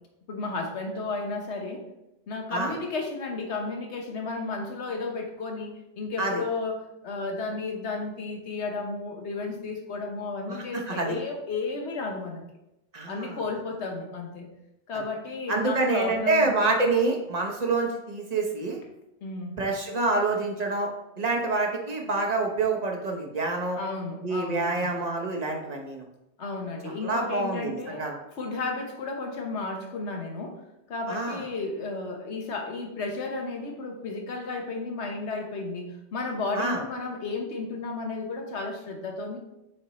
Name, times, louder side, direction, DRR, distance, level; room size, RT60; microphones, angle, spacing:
voice 1, 0.3-1.8 2.3-6.8 7.0-12.4 13.1-14.5 14.9-16.7 19.2-19.6 23.8-24.9 26.4-28.1 28.4-30.6 30.9-39.4, left 3 dB, 65° left, 3 dB, 1.3 m, -33 dB
voice 2, 10.5-11.2 12.9-13.4 15.5-18.8 19.6-20.9 21.2-23.8 24.2-26.0 26.8-28.2 31.1-31.4 36.5-36.8, right 3 dB, 35° right, 1 dB, 1.0 m, -27 dB
7.6 x 4.4 x 3.1 m, 0.89 s
omnidirectional pair, 1.2 m